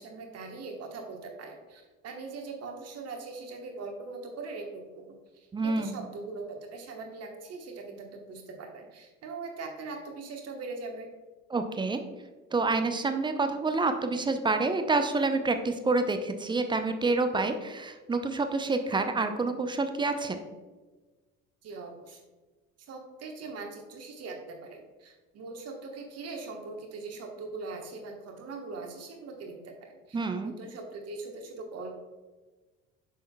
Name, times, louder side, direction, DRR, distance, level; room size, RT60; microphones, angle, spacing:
voice 1, 0.0-11.1 21.6-22.2 22.8-32.0, right 3 dB, 40° right, 3 dB, 1.2 m, -41 dB
voice 2, 5.5-6.0 11.5-12.0 12.5-20.4 30.1-30.5, right 3 dB, 10° right, 8 dB, 0.5 m, -28 dB
8.3 x 6.4 x 2.2 m, 1.3 s
figure-of-eight pair, 55°, 40 cm